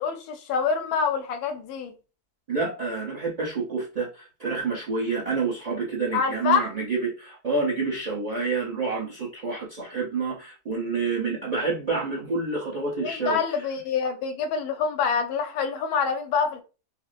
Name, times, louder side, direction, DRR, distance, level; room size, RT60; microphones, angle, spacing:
voice 1, 0.0-1.9 6.1-6.7 13.0-16.6, left 6 dB, 80° left, 1.1 m, -26 dB
voice 2, 2.5-13.4, right 4 dB, 35° right, 0.6 m, -28 dB
4.2 x 2.0 x 2.5 m
omnidirectional pair, 1.6 m